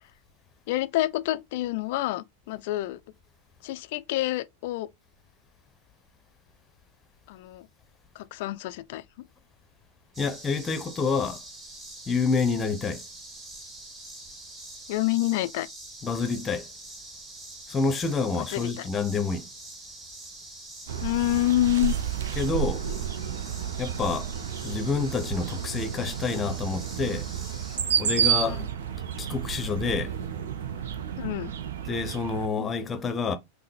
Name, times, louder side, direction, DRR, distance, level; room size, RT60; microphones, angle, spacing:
voice 1, 0.7-3.0 3.6-4.9 7.3-7.7 8.2-9.0 14.9-15.7 18.5-18.9 21.0-21.9 28.4-28.7 31.2-31.5 32.6-32.7, left 16 dB, 50° left, 0.3 m, -27 dB
sound 1, 10.1-27.8, right 2 dB, 20° right, 1.2 m, -44 dB
voice 2, 10.2-11.4 12.1-13.0 16.0-16.6 17.7-19.5 22.3-22.9 23.8-24.3 24.6-27.3 28.0-28.7 29.2-30.1 31.9-33.4, left 4 dB, 20° left, 0.7 m, -28 dB
sound 2, 20.9-32.5, right 8 dB, 60° right, 0.5 m, -31 dB
5.5 x 2.1 x 3.2 m
figure-of-eight pair, 90°, 0 cm